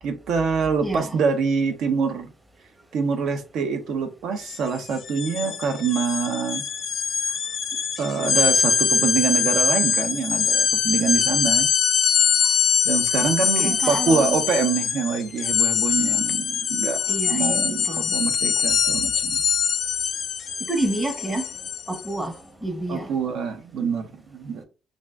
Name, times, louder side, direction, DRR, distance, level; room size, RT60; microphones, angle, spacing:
voice 1, 0.0-2.3 2.9-6.6 8.0-11.7 12.8-19.4 22.9-24.6, right 5 dB, 75° right, 0.5 m, -25 dB
voice 2, 0.8-1.2 13.4-14.4 17.1-18.2 20.6-21.5 21.9-23.1, right 1 dB, 15° right, 0.7 m, -29 dB
sound 1, 4.4-4.6 4.9-22.1, left 7 dB, 65° left, 0.3 m, -23 dB
2.5 x 2.0 x 3.4 m
supercardioid pair, 65°, 0 cm